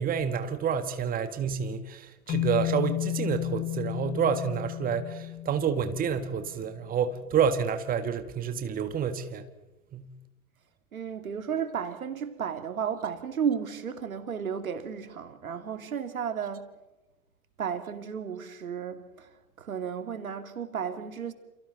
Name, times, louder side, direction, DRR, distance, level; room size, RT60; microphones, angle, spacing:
voice 1, 0.0-9.5 9.9-10.1, right 7 dB, 20° right, 1.8 m, -29 dB
sound 1, 2.3-6.6, left 15 dB, 20° left, 0.8 m, -33 dB
voice 2, 10.9-16.7 17.6-21.3, right 7 dB, 75° right, 2.7 m, -33 dB
29.5 x 29.0 x 4.1 m
figure-of-eight pair, 105°, 43 cm